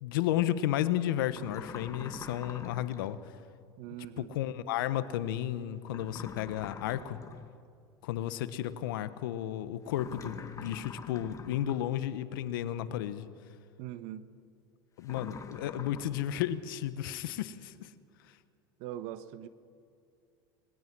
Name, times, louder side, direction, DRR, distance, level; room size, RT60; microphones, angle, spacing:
voice 1, 0.0-3.2 4.2-7.2 8.0-13.3 15.0-17.9, left 12 dB, 75° left, 1.3 m, -33 dB
sound 1, 1.3-3.1 5.9-7.5 9.9-11.9 15.0-16.3, left 5 dB, 30° left, 2.2 m, -45 dB
voice 2, 3.8-4.3 13.8-14.3 18.8-19.5, right 12 dB, 65° right, 1.3 m, -41 dB
26.0 x 20.5 x 6.2 m
hypercardioid pair, 95°, 11 cm